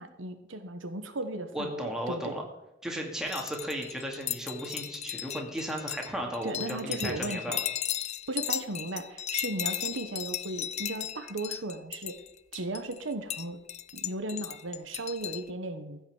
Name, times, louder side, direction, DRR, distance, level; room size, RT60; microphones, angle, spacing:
voice 1, 0.0-2.4 6.4-7.6 8.3-12.2 12.5-13.6 13.9-16.0, right 2 dB, 85° right, 8 dB, 1.2 m, -36 dB
voice 2, 1.5-2.4 2.8-7.6, equal, 5° right, 0 dB, 2.4 m, -35 dB
sound 1, 3.3-15.5, left 11 dB, 35° left, 0.4 m, -36 dB
15.0 x 5.9 x 7.3 m, 0.91 s
head